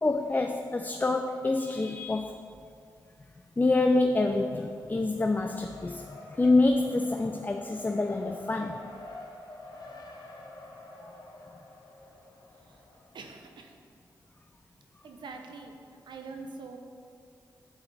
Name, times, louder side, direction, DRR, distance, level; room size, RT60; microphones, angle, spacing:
voice 1, 0.0-2.4 3.6-8.8, left 2 dB, 20° left, 5 dB, 0.4 m, -26 dB
Race car auto racing, 4.5-13.4, left 2 dB, 60° left, 1.1 m, -48 dB
voice 2, 13.1-13.8 15.0-15.7 16.1-16.8, right 4 dB, 80° right, 4 dB, 0.8 m, -44 dB
9.5 x 4.4 x 4.1 m, 2.4 s
cardioid pair, 55°, 8 cm